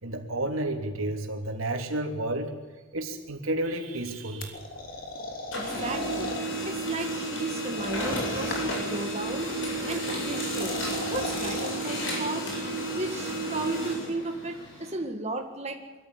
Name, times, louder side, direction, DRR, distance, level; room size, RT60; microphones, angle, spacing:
voice 1, 0.0-2.5 2.9-4.6, right 1 dB, 90° right, 3 dB, 3.3 m, -31 dB
Printer, 3.8-5.1 5.4-14.9, right 1 dB, 70° left, 7.9 m, -32 dB
sound 1, 4.4-6.4 7.7-8.9 10.3-11.8, left 2 dB, 45° left, 3.2 m, -37 dB
voice 2, 5.5-6.3 6.6-9.5 9.9-10.7 11.1-12.5 12.9-15.8, right 2 dB, 30° right, 3 dB, 1.9 m, -34 dB
23.5 x 14.0 x 9.7 m, 1.2 s
head